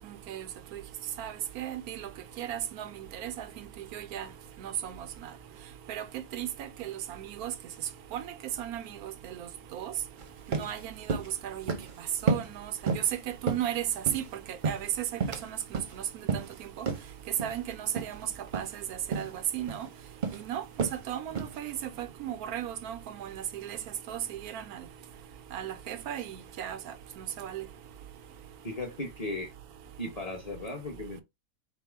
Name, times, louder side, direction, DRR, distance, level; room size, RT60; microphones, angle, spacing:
voice 1, 0.0-0.5 0.7-0.8 1.2-2.1 2.4-4.3 4.6-5.0 5.9-6.0 6.3-7.5 8.1-9.4 9.7-9.9 10.5-11.7 12.2-13.0 13.4-13.9 14.1-15.1 15.4-15.8 16.1-16.9 17.4-18.3 18.5-18.8 19.1-19.9 20.3-20.6 21.1-23.8 24.1-24.8 25.5-27.6, right 10 dB, 85° right, 1.1 m, -36 dB
sound 1, 10.2-10.3 10.5-10.7 11.1-11.3 11.7-11.9 12.3-12.5 12.9-13.1 13.5-14.3 14.6-15.5 15.7-15.9 16.3-16.5 16.9-17.0 17.4-17.6 18.0-18.1 18.5-18.7 19.1-19.3 19.7-19.9 20.2-20.4 20.8-21.0 21.3-21.6, right 5 dB, 45° right, 0.7 m, -31 dB
voice 2, 28.6-29.5 30.0-31.2, left 2 dB, 30° left, 0.8 m, -36 dB
4.3 x 2.0 x 4.5 m
omnidirectional pair, 1.5 m